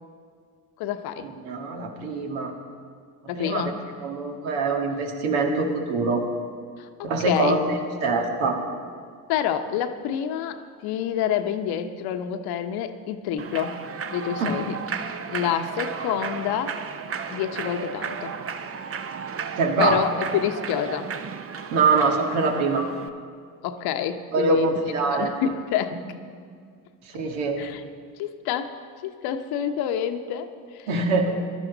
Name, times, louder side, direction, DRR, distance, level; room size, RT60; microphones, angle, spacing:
voice 1, 0.8-1.3 3.3-3.8 6.8-7.6 9.3-13.8 14.1-14.8 15.3-16.8 17.3-18.3 19.8-21.1 23.6-24.7 25.1-26.0 27.6-27.8 28.2-30.9, left 9 dB, 60° left, 8 dB, 1.1 m, -28 dB
voice 2, 1.4-2.5 3.4-3.7 4.0-6.3 7.0-8.6 14.4-14.5 19.6-20.0 21.7-22.9 24.3-25.3 25.9-26.0 27.1-27.6 30.9-31.4, right 3 dB, 70° right, 2 dB, 1.9 m, -24 dB
Human voice / Clapping / Cheering, 13.4-23.1, right 6 dB, 30° right, 0.9 m, -34 dB
20.0 x 12.5 x 4.0 m, 2.1 s
hypercardioid pair, 60°, 42 cm